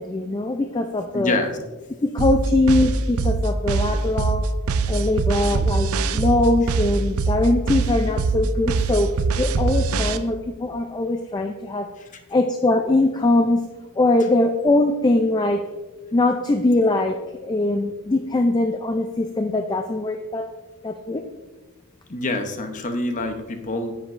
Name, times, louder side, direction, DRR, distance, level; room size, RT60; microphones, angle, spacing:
voice 1, 0.0-1.4 2.0-4.5 4.9-9.1 9.4-11.9 12.3-13.6 14.0-15.6 16.1-20.5 20.8-21.2, left 2 dB, 20° left, 5 dB, 0.3 m, -21 dB
voice 2, 1.1-1.6 12.0-12.1 22.1-24.0, left 2 dB, 35° left, 6 dB, 0.8 m, -26 dB
sound 1, 2.2-10.2, right 4 dB, 85° right, 0.5 m, -22 dB
9.8 x 7.9 x 2.5 m, 1.3 s
head